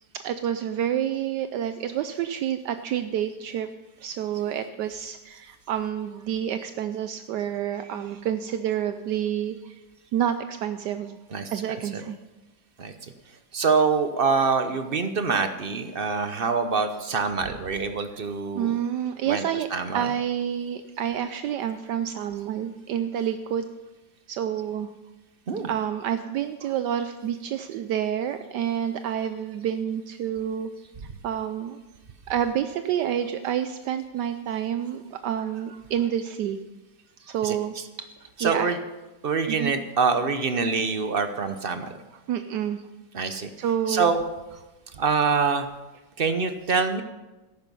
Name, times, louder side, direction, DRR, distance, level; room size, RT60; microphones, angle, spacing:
voice 1, 0.1-3.7 4.0-9.8 10.1-11.2 11.5-12.2 18.5-19.7 19.9-23.7 24.3-24.9 25.6-30.7 31.0-31.8 32.3-36.6 37.3-38.1 38.4-38.7 39.5-39.7 42.1-42.8 43.6-44.1, right 9 dB, 75° right, 10 dB, 1.2 m, -28 dB
voice 2, 11.3-12.0 12.8-13.1 13.5-18.8 19.2-20.1 25.5-25.7 37.4-37.9 38.4-38.8 39.2-41.9 43.1-44.2 44.9-45.7 46.2-47.0, right 5 dB, 45° right, 9 dB, 0.7 m, -25 dB
14.0 x 11.0 x 5.4 m, 1.1 s
omnidirectional pair, 1.9 m